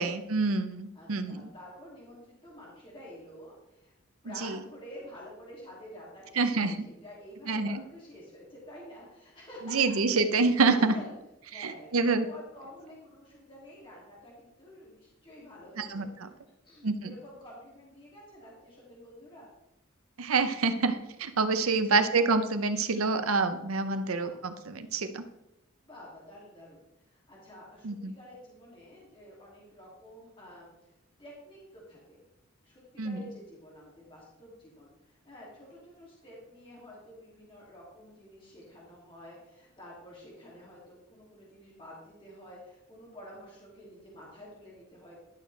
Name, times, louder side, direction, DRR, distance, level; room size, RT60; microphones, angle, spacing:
voice 1, 0.0-1.4 4.4-4.6 6.4-6.8 7.5-7.8 9.7-10.9 11.5-12.2 15.8-16.3 16.8-17.1 20.2-25.3 27.8-28.1 33.0-33.2, right 4 dB, 85° right, 10 dB, 0.7 m, -27 dB
voice 2, 0.9-3.9 4.2-9.9 10.6-11.1 11.5-16.1 16.6-19.5 21.9-22.0 24.2-24.3 25.9-30.7 31.2-32.2 32.6-45.2, equal, 25° left, -5 dB, 2.5 m, -49 dB
11.5 x 6.5 x 3.3 m, 0.89 s
head